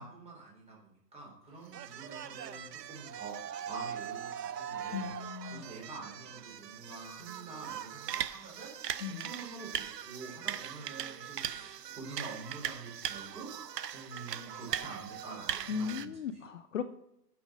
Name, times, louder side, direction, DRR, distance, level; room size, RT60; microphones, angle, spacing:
voice 1, 0.0-5.1 5.5-13.5 13.9-16.4, right 3 dB, 10° right, -2 dB, 3.6 m, -47 dB
sound 1, 1.7-16.1, right 9 dB, 70° right, 0.9 m, -40 dB
voice 2, 4.9-5.7 9.0-9.2 15.7-16.8, left 7 dB, 50° left, 10 dB, 0.7 m, -37 dB
8.8 x 6.0 x 6.2 m, 0.83 s
hypercardioid pair, 145°, 50 cm